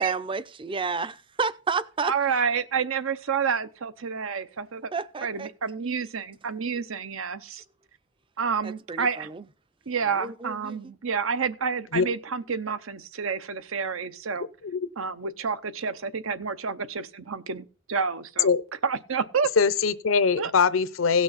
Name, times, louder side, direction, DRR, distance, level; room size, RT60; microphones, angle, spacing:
voice 1, 0.0-2.1 4.9-5.5 8.6-9.4 10.2-10.8, right 5 dB, 25° right, 0.5 m, -30 dB
voice 2, 2.0-4.9 5.2-7.6 8.4-9.3 9.9-14.5 15.0-18.6 18.8-19.5 20.4-20.5, right 6 dB, 80° right, 0.8 m, -29 dB
voice 3, 19.6-21.2, left 5 dB, 75° left, 0.6 m, -22 dB
17.0 x 6.2 x 4.1 m
head